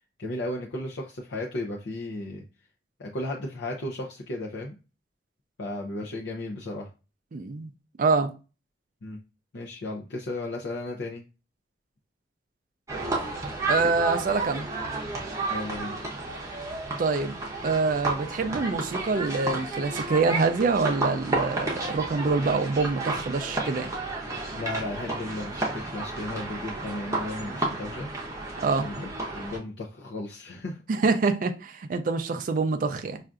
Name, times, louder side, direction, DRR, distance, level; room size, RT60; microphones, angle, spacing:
voice 1, 0.2-2.4 3.0-4.7 5.6-6.9 9.0-9.2 9.5-11.2 15.5-16.0 24.5-28.1 28.8-30.8, left 2 dB, 70° left, 0.5 m, -34 dB
voice 2, 7.3-7.7 8.0-8.3 13.7-14.7 17.0-17.3 17.6-23.9 28.6-28.9 30.9-33.2, right 4 dB, 45° right, 0.4 m, -25 dB
sound 1, 12.9-29.6, right 2 dB, 15° right, 0.7 m, -32 dB
5.5 x 2.4 x 2.4 m
head